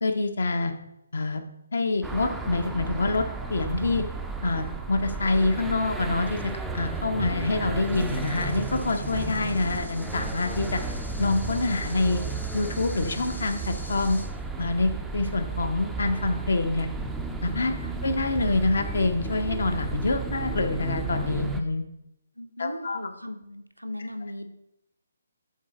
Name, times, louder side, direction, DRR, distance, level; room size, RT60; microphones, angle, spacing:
voice 1, 0.0-0.7 1.1-1.4 1.7-3.2 3.5-4.0 4.4-6.4 6.7-10.8 11.2-12.2 12.5-14.2 14.6-16.9 17.4-17.7 18.0-21.9 22.6-23.0, left 3 dB, 55° left, 7 dB, 0.7 m, -26 dB
sound 1, 2.0-21.6, right 3 dB, 5° right, 0.4 m, -33 dB
sound 2, 7.9-14.3, left 1 dB, 75° left, 1.3 m, -46 dB
voice 2, 22.4-24.5, left 1 dB, 90° right, 7 dB, 0.7 m, -39 dB
6.4 x 3.9 x 4.1 m, 0.82 s
figure-of-eight pair, 140°, 0 cm